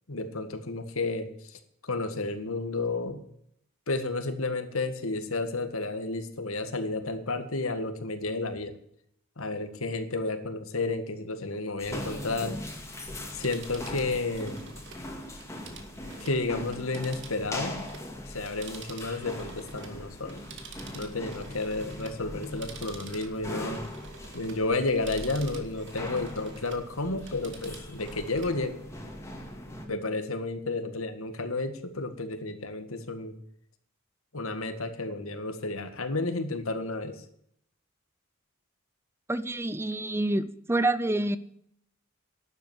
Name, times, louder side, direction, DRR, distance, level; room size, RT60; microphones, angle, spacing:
voice 1, 0.1-3.2 3.9-8.7 9.4-12.6 13.3-14.6 16.2-17.8 18.3-20.4 20.9-23.8 24.3-28.8 29.9-33.3 34.3-37.2, left 2 dB, 80° left, 9 dB, 1.9 m, -32 dB
sound 1, 11.8-29.9, left 1 dB, 15° left, 2.6 m, -40 dB
Telephone, 13.2-18.1 18.4-26.9 27.2-28.6 29.0-29.1, right 5 dB, 60° right, 2.3 m, -49 dB
voice 2, 39.3-41.4, right 2 dB, 10° right, 15 dB, 0.5 m, -27 dB
12.0 x 8.6 x 9.7 m, 0.70 s
head